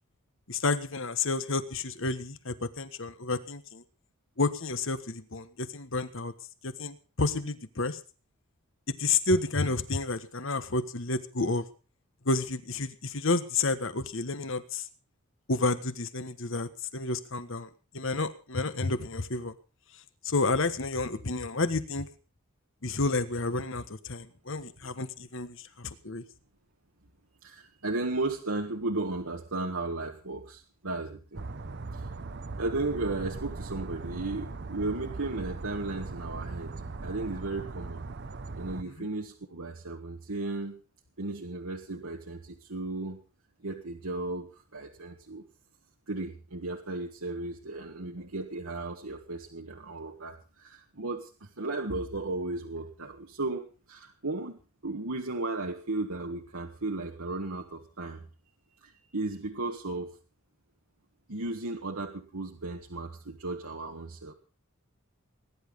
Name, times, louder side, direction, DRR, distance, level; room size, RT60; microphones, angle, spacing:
voice 1, 0.5-3.8 4.4-6.3 6.6-8.0 8.9-11.6 12.2-14.8 15.5-17.7 17.9-19.5 20.2-22.1 22.8-26.2, left 3 dB, 65° left, 12 dB, 1.4 m, -30 dB
voice 2, 27.4-31.4 31.9-32.0 32.6-38.1 38.5-40.8 41.2-43.2 43.6-44.5 44.7-45.4 46.1-58.2 58.8-60.1 61.3-64.3, right 2 dB, 80° right, 1 dB, 1.6 m, -35 dB
sound 1, 31.3-38.8, right 3 dB, 55° right, 0.8 m, -39 dB
20.0 x 10.5 x 5.3 m, 0.36 s
head